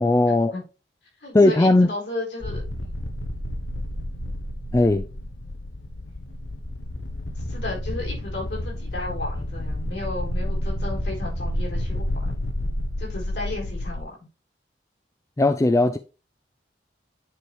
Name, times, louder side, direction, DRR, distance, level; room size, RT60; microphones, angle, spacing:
voice 1, 0.0-0.5 1.3-1.9 4.7-5.1 15.4-16.0, left 2 dB, 15° left, 0.3 m, -17 dB
voice 2, 1.2-3.0 7.3-12.1 13.0-14.2, left 2 dB, 65° left, 4.4 m, -34 dB
sound 1, 2.4-14.0, left 1 dB, 85° left, 1.2 m, -30 dB
9.4 x 4.7 x 3.3 m
head